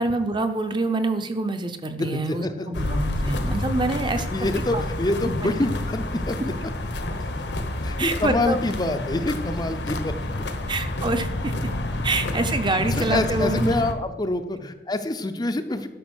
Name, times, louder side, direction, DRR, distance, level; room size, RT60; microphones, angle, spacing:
voice 1, 0.0-4.3 4.7-4.8 5.4-5.5 8.0-8.6 10.7-11.5 12.0-13.6, right 2 dB, 25° right, 8 dB, 0.7 m, -26 dB
voice 2, 2.0-2.8 4.3-6.7 7.8-10.1 12.7-15.9, left 2 dB, 20° left, 8 dB, 0.6 m, -26 dB
sound 1, 2.7-13.9, left 1 dB, 70° left, 1.1 m, -29 dB
12.5 x 5.6 x 6.2 m, 1.1 s
head